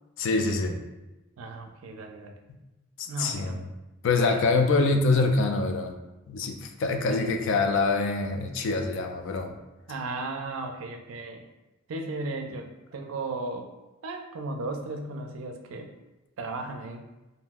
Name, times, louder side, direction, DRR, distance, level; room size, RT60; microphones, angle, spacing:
voice 1, 0.2-0.8 3.0-3.7 4.0-5.9 6.3-9.5, left 3 dB, 65° left, 5 dB, 0.4 m, -25 dB
voice 2, 1.4-2.4 3.1-3.6 7.0-7.5 9.9-11.4 11.9-13.7 14.0-15.9 16.4-17.0, right 2 dB, 75° right, 4 dB, 0.4 m, -35 dB
2.6 x 2.0 x 3.4 m, 1.0 s
head